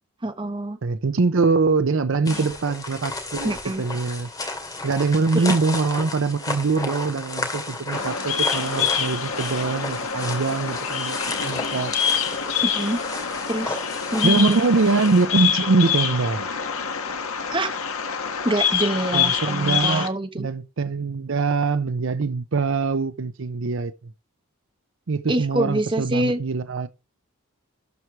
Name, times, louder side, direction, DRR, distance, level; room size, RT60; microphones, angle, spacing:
voice 1, 0.2-0.8 2.3-2.4 3.4-3.8 5.3-5.5 12.6-13.0 13.5-13.8 14.1-14.6 17.5-17.8 18.4-20.5 25.3-26.4, right 1 dB, 25° right, 1.2 m, -25 dB
voice 2, 0.8-4.3 4.8-11.2 11.4-11.9 14.2-16.5 19.1-24.1 25.1-26.9, right 4 dB, 60° right, 0.6 m, -23 dB
sound 1, 2.2-15.2, left 2 dB, 15° left, 2.3 m, -33 dB
Bird vocalization bird call bird song, 7.9-20.1, left 7 dB, 80° left, 1.6 m, -26 dB
12.5 x 4.6 x 4.7 m
head